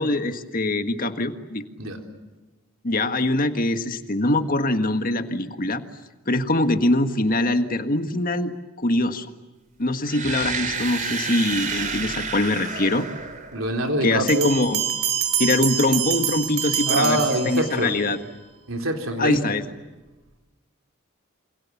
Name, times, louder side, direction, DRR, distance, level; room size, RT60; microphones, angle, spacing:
voice 1, 0.0-1.6 2.8-5.8 6.3-9.3 9.8-13.1 14.0-14.8 15.4-17.2 17.5-18.2 19.2-19.6, left 2 dB, 40° left, 8 dB, 1.7 m, -23 dB
sound 1, 10.0-14.0, right 5 dB, 40° right, 3.2 m, -30 dB
voice 2, 13.5-14.5 16.9-18.0 18.7-19.6, right 1 dB, 70° right, 4 dB, 3.9 m, -24 dB
Bell, 14.3-18.1, right 9 dB, 90° right, 3.6 m, -26 dB
28.5 x 26.5 x 7.3 m, 1.2 s
head